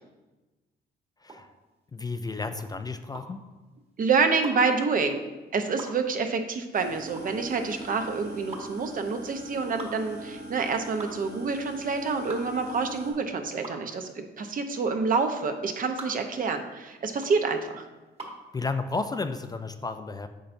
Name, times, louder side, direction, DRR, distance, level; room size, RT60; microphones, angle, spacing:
sound 1, 1.2-18.5, right 2 dB, 35° right, 1.4 m, -45 dB
voice 1, 1.9-3.4 18.5-20.3, left 3 dB, 20° left, 8 dB, 0.3 m, -32 dB
voice 2, 4.0-5.2 5.5-17.8, right 4 dB, 50° right, 6 dB, 0.7 m, -27 dB
sound 2, 6.7-13.1, right 1 dB, 65° right, 2.1 m, -41 dB
8.6 x 5.5 x 2.6 m, 1.2 s
cardioid pair, 90°, 18 cm